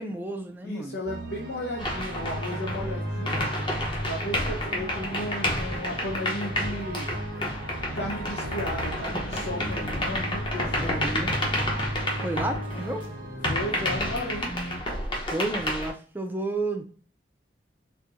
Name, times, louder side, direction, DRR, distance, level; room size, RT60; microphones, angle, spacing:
voice 1, 0.0-1.0 10.8-11.3 12.2-13.0 15.3-16.8, right 2 dB, 10° right, 4 dB, 0.5 m, -31 dB
voice 2, 0.6-3.4 4.0-7.1 7.9-11.2 13.4-14.5, left 1 dB, 75° left, 0 dB, 0.8 m, -34 dB
sound 1, 1.1-14.8, equal, 80° right, 1.1 m, -36 dB
sound 2, 1.8-13.1 13.4-15.9, left 1 dB, 25° left, 0.9 m, -30 dB
4.3 x 2.7 x 2.5 m, 0.41 s
head